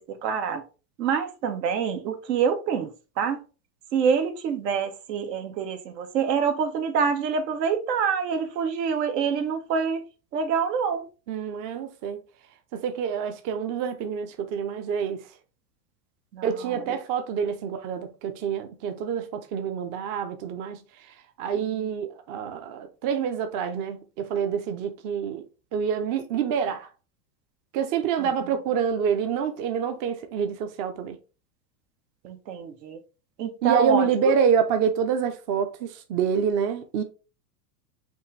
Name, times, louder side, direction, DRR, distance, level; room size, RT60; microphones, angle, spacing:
voice 1, 0.1-0.6 1.0-3.4 3.9-10.0 10.3-11.1 16.3-16.5 21.6-21.8 28.2-28.3 32.2-33.0 33.4-34.0, right 6 dB, 75° right, 1.1 m, -26 dB
voice 2, 11.3-12.2 12.7-15.3 16.4-25.5 25.7-26.9 27.7-31.2 33.6-37.0, right 7 dB, 40° right, 0.6 m, -27 dB
5.4 x 2.6 x 3.2 m
supercardioid pair, 125°, 49 cm